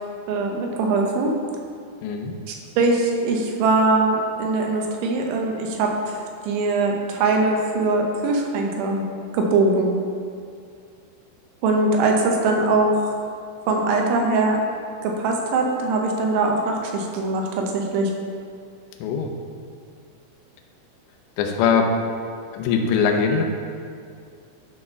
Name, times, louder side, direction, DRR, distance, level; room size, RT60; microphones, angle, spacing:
voice 1, 0.3-1.3 2.5-9.1 9.3-9.9 11.6-13.1 13.7-14.6 15.0-18.1, right 3 dB, 80° right, 1 dB, 3.3 m, -21 dB
voice 2, 2.0-2.3 19.0-19.3 21.4-21.9 22.5-23.4, left 6 dB, 80° left, 3 dB, 2.8 m, -21 dB
11.0 x 4.3 x 5.6 m, 2.4 s
omnidirectional pair, 5.4 m